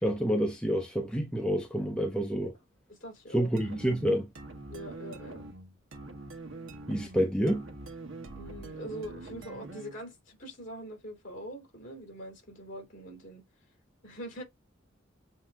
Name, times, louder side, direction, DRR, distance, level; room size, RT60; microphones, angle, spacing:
voice 1, 0.0-2.5 3.3-4.3 6.9-7.7, equal, 5° left, 0.6 m, -28 dB
voice 2, 2.9-3.5 4.7-5.4 8.3-13.4 14.0-14.4, equal, 45° left, 3.2 m, -43 dB
sound 1, 3.6-10.0, right 2 dB, 90° right, 1.0 m, -44 dB
7.3 x 2.8 x 2.3 m
head